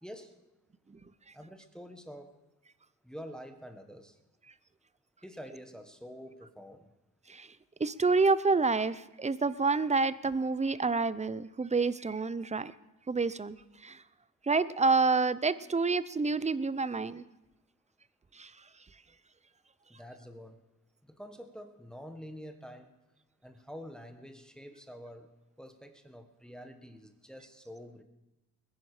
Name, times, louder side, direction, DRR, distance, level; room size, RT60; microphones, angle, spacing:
voice 1, 0.0-0.4 1.3-2.3 3.0-4.1 5.2-6.9 19.9-20.6 21.0-22.9 23.4-25.3 25.6-28.0, equal, ahead, 6 dB, 1.4 m, -47 dB
voice 2, 7.8-12.7 13.1-13.6 13.8-14.0 14.4-17.2 18.4-18.5, right 4 dB, 20° right, 16 dB, 0.6 m, -28 dB
20.5 x 10.5 x 4.9 m, 1.0 s
cardioid pair, 85°, 39 cm